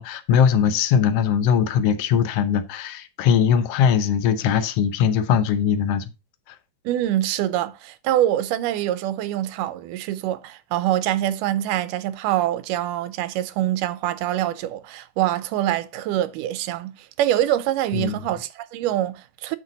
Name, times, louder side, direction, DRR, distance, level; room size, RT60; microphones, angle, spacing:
voice 1, 0.0-6.1 17.9-18.3, left 7 dB, 75° left, 1.4 m, -20 dB
voice 2, 6.9-19.6, right 13 dB, 90° right, 2.2 m, -25 dB
8.0 x 6.2 x 3.9 m
omnidirectional pair, 3.7 m